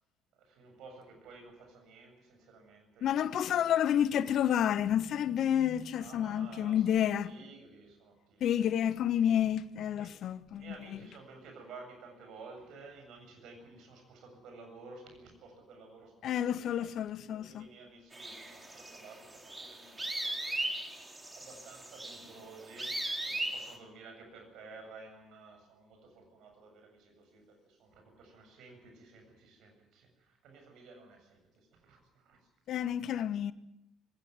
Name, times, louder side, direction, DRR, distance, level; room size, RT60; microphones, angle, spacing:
voice 1, 0.4-3.8 6.0-8.8 9.9-10.1 10.5-16.9 17.3-20.7 21.4-32.4, right 3 dB, 60° right, 7.7 m, -53 dB
voice 2, 3.0-7.3 8.4-11.0 16.2-17.7 32.7-33.5, left 10 dB, 55° left, 1.1 m, -30 dB
sound 1, 18.1-23.7, right 1 dB, 15° right, 4.3 m, -38 dB
20.5 x 18.0 x 9.3 m
figure-of-eight pair, 50°, 0 cm